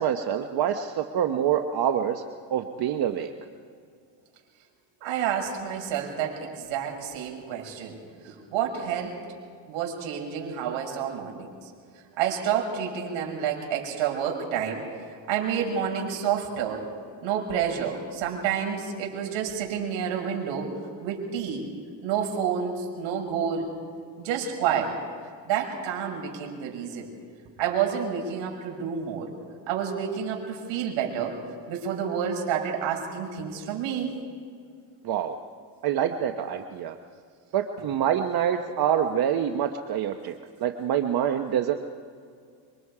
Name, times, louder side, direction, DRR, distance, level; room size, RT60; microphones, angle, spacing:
voice 1, 0.0-2.2 2.5-3.3 35.0-35.3 35.8-36.9 37.5-40.3 40.6-41.7, right 9 dB, 50° right, 6 dB, 1.1 m, -26 dB
voice 2, 5.0-8.0 8.2-9.2 9.7-11.5 12.2-14.8 15.3-16.8 17.2-20.7 21.0-21.7 22.0-23.7 24.2-24.9 25.5-27.1 27.6-29.3 29.7-31.4 31.7-34.1, right 8 dB, 65° right, 0 dB, 6.3 m, -29 dB
26.5 x 24.0 x 4.9 m, 2.2 s
cardioid pair, 130°, 49 cm